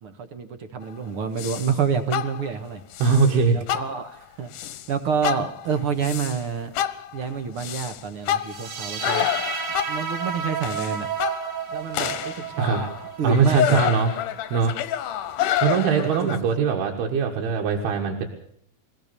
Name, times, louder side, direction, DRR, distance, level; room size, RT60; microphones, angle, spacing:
voice 1, 0.0-2.8 3.5-4.5 4.9-6.7 7.1-9.3 9.9-11.1 11.7-12.9 13.2-13.8 16.0-16.3, right 6 dB, 55° right, 8 dB, 1.6 m, -28 dB
sound 1, 1.4-1.8 2.1-2.6 2.9-3.3 3.7-4.2 4.5-4.9 5.2-6.4 6.7-10.1 10.6-11.6 11.9-16.4, left 11 dB, 70° left, 2.2 m, -28 dB
voice 2, 3.0-3.6 12.6-12.8 13.2-14.1 14.5-14.7 15.6-18.3, right 5 dB, 90° right, 1 dB, 3.6 m, -21 dB
sound 2, 8.4-15.5, right 6 dB, 70° right, 3.3 m, -33 dB
23.5 x 16.5 x 6.9 m, 0.67 s
omnidirectional pair, 4.4 m